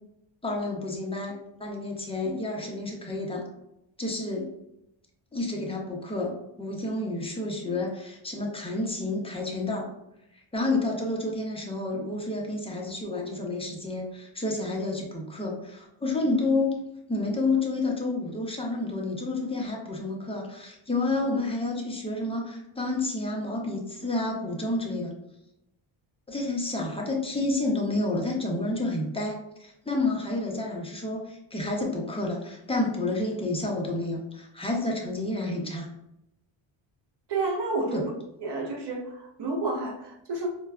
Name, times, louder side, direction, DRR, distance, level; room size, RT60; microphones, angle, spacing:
voice 1, 0.4-1.3 1.6-3.4 4.0-4.5 5.3-9.9 10.5-16.8 17.1-25.1 26.3-35.9 37.9-38.0, left 2 dB, 10° left, -1 dB, 0.6 m, -30 dB
voice 2, 37.3-38.0 38.4-40.6, right 2 dB, 55° right, 1 dB, 0.9 m, -30 dB
4.6 x 2.1 x 2.3 m, 0.85 s
cardioid pair, 115°, 50 cm